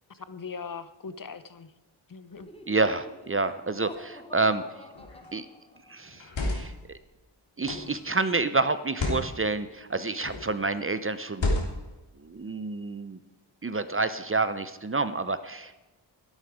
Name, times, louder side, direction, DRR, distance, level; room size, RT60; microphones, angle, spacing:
voice 1, 0.1-1.7 2.1-2.5, left 5 dB, 45° left, 13 dB, 0.8 m, -40 dB
Laughter, 2.3-6.0, left 1 dB, 10° left, 1.3 m, -47 dB
voice 2, 2.7-4.6 5.3-5.5 5.9-7.0 7.6-11.5 12.2-13.2 13.6-15.8, right 3 dB, 30° right, 13 dB, 0.6 m, -28 dB
sound 1, 5.0-5.3 6.1-6.8 7.6-8.0 8.8-9.3 10.2-10.5 11.3-12.0, left 2 dB, 70° left, 3.2 m, -30 dB
13.0 x 11.5 x 4.9 m, 1.1 s
wide cardioid pair, 85°, 47 cm